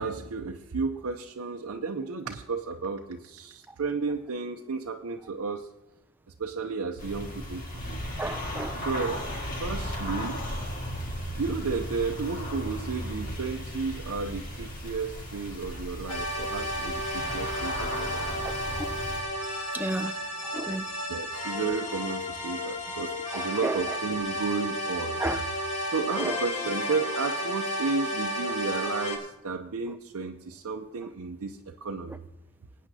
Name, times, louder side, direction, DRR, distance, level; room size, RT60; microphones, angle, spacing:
voice 1, 0.0-5.7 6.4-8.0 8.8-9.2 9.5-10.4 11.3-18.3 21.1-25.6 25.9-32.2, right 4 dB, 85° right, 3 dB, 0.6 m, -33 dB
sound 1, 7.0-19.2, equal, 40° left, 1.8 m, -35 dB
voice 2, 8.2-8.8 17.7-17.8 18.4-19.0 19.7-20.2 20.4-20.9 23.3-24.0 25.2-25.4 26.2-26.4, right 2 dB, 10° right, 10 dB, 0.3 m, -33 dB
sound 2, 16.1-29.2, left 1 dB, 85° left, 2.2 m, -32 dB
19.5 x 9.3 x 2.8 m, 0.95 s
head